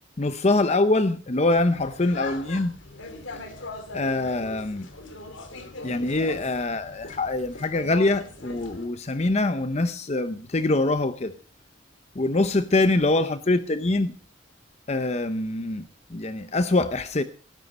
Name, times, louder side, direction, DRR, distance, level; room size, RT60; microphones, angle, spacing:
voice 1, 0.2-2.7 3.9-4.9 5.8-11.3 12.1-14.1 14.9-17.2, left 2 dB, 35° left, 0.7 m, -24 dB
sound 1, 1.5-8.9, left 3 dB, 75° left, 2.7 m, -40 dB
18.5 x 9.6 x 5.3 m
head